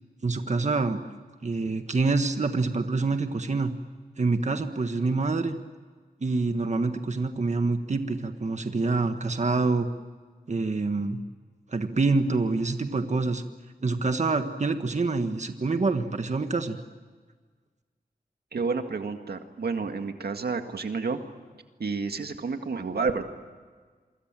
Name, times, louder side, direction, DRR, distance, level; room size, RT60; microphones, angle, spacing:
voice 1, 0.2-1.0 1.4-3.7 4.2-5.6 6.2-9.9 10.5-11.2 11.7-13.4 13.8-16.8, right 3 dB, 45° right, 7 dB, 1.5 m, -26 dB
voice 2, 18.5-21.2 21.8-23.3, right 4 dB, 90° right, 6 dB, 2.0 m, -30 dB
27.5 x 25.0 x 7.6 m, 1.5 s
wide cardioid pair, 95°, 16 cm